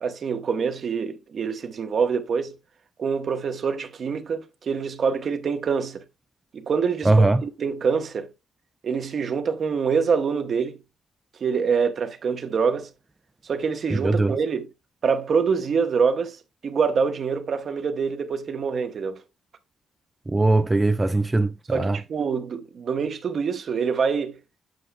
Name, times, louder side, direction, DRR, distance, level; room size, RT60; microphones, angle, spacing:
voice 1, 0.0-2.5 3.0-6.0 6.5-8.3 8.8-10.8 11.4-12.9 13.4-14.7 15.0-19.2 21.7-24.4, right 5 dB, 50° right, 1.0 m, -25 dB
voice 2, 7.1-7.4 14.0-14.3 20.3-22.0, right 2 dB, 15° right, 0.4 m, -20 dB
7.8 x 6.5 x 2.3 m
cardioid pair, 90°, 0 cm